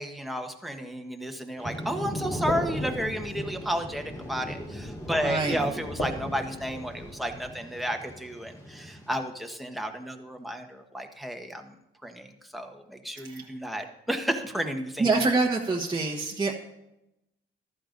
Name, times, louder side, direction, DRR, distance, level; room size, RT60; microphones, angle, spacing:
voice 1, 0.0-11.6 12.0-15.1, equal, ahead, 4 dB, 1.2 m, -32 dB
Thunder / Rain, 1.6-9.1, equal, 15° left, 3.7 m, -38 dB
sound 1, 2.3-7.5, equal, 35° left, 2.6 m, -40 dB
voice 2, 5.1-5.6 13.2-13.5 15.0-16.6, right 3 dB, 20° right, -1 dB, 1.2 m, -26 dB
14.5 x 12.0 x 2.6 m, 0.89 s
cardioid pair, 90°, 20 cm